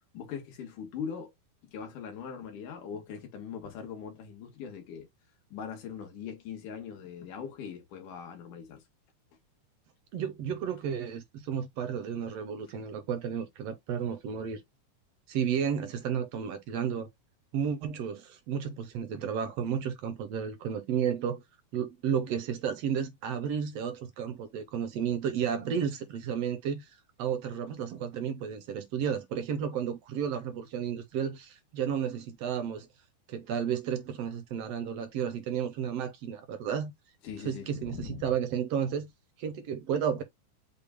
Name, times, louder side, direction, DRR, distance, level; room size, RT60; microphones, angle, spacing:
voice 1, 0.0-1.3 1.7-5.1 5.5-8.8 37.2-38.2, left 7 dB, 80° left, 2.9 m, -41 dB
voice 2, 10.1-14.6 15.3-17.1 17.5-21.4 21.7-26.9 27.2-32.9 33.3-36.9 37.4-39.1 39.4-40.2, right 8 dB, 70° right, 1.6 m, -32 dB
6.7 x 2.3 x 3.4 m
omnidirectional pair, 3.6 m